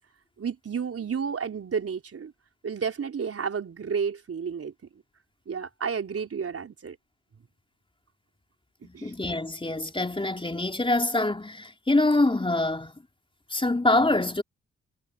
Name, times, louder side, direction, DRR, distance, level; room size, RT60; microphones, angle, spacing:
voice 1, 0.4-2.3 2.6-4.7 5.5-7.0 8.9-9.1, right 6 dB, 50° right, 4.5 m, -31 dB
voice 2, 8.8-12.9 13.5-14.4, left 2 dB, 15° left, 3.7 m, -25 dB
hypercardioid pair, 45°, 31 cm